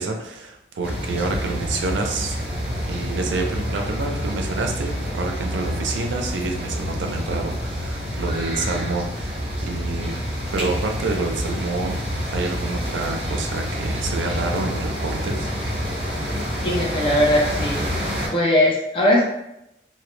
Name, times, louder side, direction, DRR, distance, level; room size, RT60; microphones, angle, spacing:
voice 1, 0.0-2.4 2.9-10.2 10.5-12.0 12.3-15.5, right 3 dB, 90° right, 3 dB, 0.4 m, -28 dB
sound 1, 0.8-18.3, equal, 30° right, 0.8 m, -28 dB
voice 2, 16.6-17.8 18.3-19.2, left 1 dB, 30° left, -3 dB, 0.4 m, -19 dB
2.1 x 2.0 x 3.0 m, 0.85 s
head